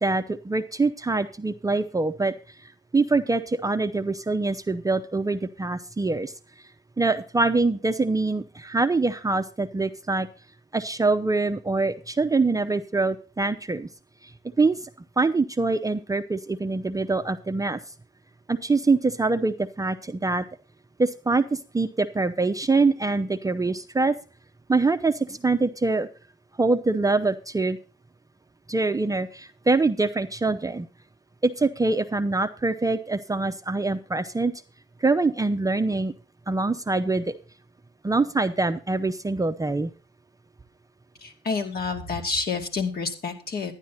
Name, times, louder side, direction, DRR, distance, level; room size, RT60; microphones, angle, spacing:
voice 1, 0.0-6.3 7.0-10.3 10.7-13.9 14.2-14.3 14.6-14.9 15.2-17.8 18.5-20.4 21.0-24.1 24.7-26.1 26.6-27.8 28.7-30.9 31.4-34.5 35.0-36.1 36.5-37.3 38.0-39.9, right 3 dB, 15° right, 8 dB, 0.6 m, -24 dB
voice 2, 41.2-43.7, left 4 dB, 50° left, 3 dB, 2.4 m, -29 dB
10.5 x 10.5 x 4.1 m, 0.34 s
cardioid pair, 90°, 20 cm